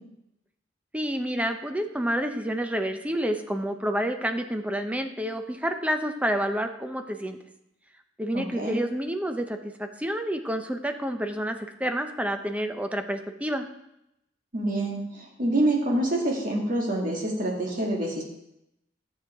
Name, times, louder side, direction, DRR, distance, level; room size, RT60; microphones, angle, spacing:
voice 1, 0.9-7.4 8.2-13.7, equal, 5° right, 6 dB, 0.6 m, -29 dB
voice 2, 8.3-8.8 14.5-18.2, right 1 dB, 45° right, -1 dB, 2.0 m, -26 dB
11.0 x 7.6 x 3.6 m, 0.82 s
head